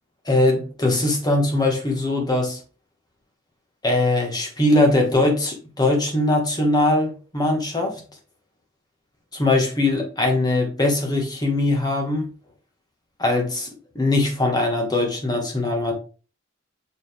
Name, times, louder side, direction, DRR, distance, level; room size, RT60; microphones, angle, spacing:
voice 1, 0.2-2.6 3.8-8.0 9.3-12.3 13.2-13.7 13.9-15.9, left 2 dB, 20° left, 2 dB, 1.6 m, -21 dB
6.0 x 4.7 x 3.7 m, 0.36 s
head